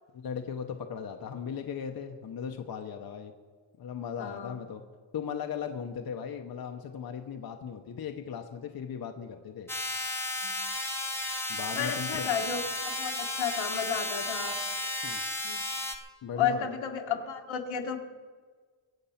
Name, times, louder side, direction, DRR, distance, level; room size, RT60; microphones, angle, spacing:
voice 1, 0.1-3.3 3.8-4.8 5.1-9.7 11.5-12.3 15.0-15.2 16.2-16.7, left 7 dB, 50° left, 5 dB, 0.9 m, -37 dB
voice 2, 4.2-4.6 10.4-10.7 11.7-14.6 15.4-15.6 16.4-18.0, left 7 dB, 80° left, 4 dB, 1.6 m, -32 dB
sound 1, 9.7-16.0, left 1 dB, 5° left, 1.1 m, -33 dB
22.5 x 8.2 x 5.8 m, 1.5 s
wide cardioid pair, 150°, 46 cm